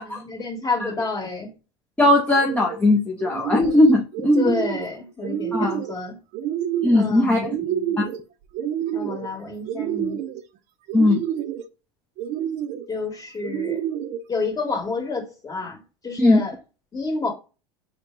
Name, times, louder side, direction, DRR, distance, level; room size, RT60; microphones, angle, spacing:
voice 1, 0.0-1.5 4.4-6.2 6.9-8.0 8.9-10.2 12.9-13.8 14.3-16.6 16.9-17.3, left 4 dB, 25° left, 1.8 m, -29 dB
voice 2, 2.0-4.6 5.5-5.8 6.8-7.6 8.0-8.1 10.9-11.2 16.2-16.4, left 1 dB, 10° left, 0.7 m, -18 dB
sound 1, 2.3-2.8 3.2-3.8 4.1-4.9 5.2-5.9 6.3-7.1 7.4-8.2 8.5-9.3 9.7-10.4 10.9-11.6 12.2-12.8 13.4-14.2, right 10 dB, 55° right, 0.6 m, -28 dB
4.5 x 2.2 x 3.8 m
hypercardioid pair, 95°, 14 cm